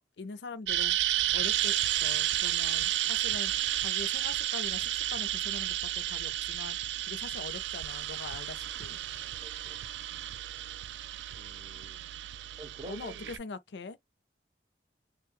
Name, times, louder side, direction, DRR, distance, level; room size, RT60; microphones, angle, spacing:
voice 1, 0.2-1.0 1.3-3.5 3.8-6.8 7.1-9.0 12.9-14.0, left 4 dB, 80° left, 0.5 m, -43 dB
sound 1, 0.7-13.4, right 13 dB, 80° right, 0.3 m, -32 dB
voice 2, 9.4-9.8 11.3-12.0 12.6-13.3, right 2 dB, 30° right, 0.6 m, -48 dB
3.2 x 2.2 x 3.1 m
head